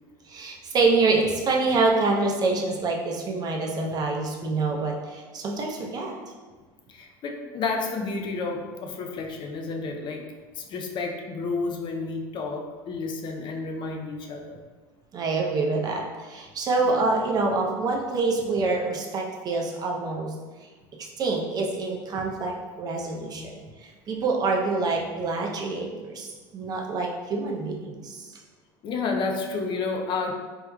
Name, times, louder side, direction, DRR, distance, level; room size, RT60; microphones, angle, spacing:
voice 1, 0.3-6.2 15.1-20.3 21.0-23.5 23.8-28.3, right 3 dB, 35° right, 0 dB, 0.6 m, -26 dB
voice 2, 6.9-10.3 10.5-14.6 16.8-17.0 28.8-30.3, left 4 dB, 45° left, 2 dB, 0.5 m, -31 dB
3.5 x 3.0 x 2.3 m, 1.3 s
supercardioid pair, 100°, 11 cm